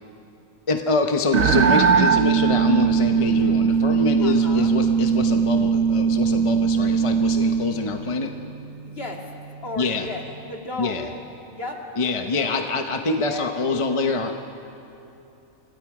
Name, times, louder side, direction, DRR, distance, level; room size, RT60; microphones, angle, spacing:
voice 1, 0.7-8.3 9.8-10.1 10.8-11.0 12.0-14.4, left 3 dB, 25° left, 5 dB, 0.8 m, -25 dB
sound 1, 1.3-7.7, right 6 dB, 75° right, 1.4 m, -20 dB
sound 2, 1.4-10.4, right 4 dB, 30° right, 1.1 m, -36 dB
voice 2, 4.2-4.8 8.9-9.3 9.6-11.2 11.5-11.8 12.3-12.9 13.2-13.9, left 2 dB, 45° left, 0 dB, 2.7 m, -35 dB
28.0 x 24.5 x 4.9 m, 2.9 s
omnidirectional pair, 1.4 m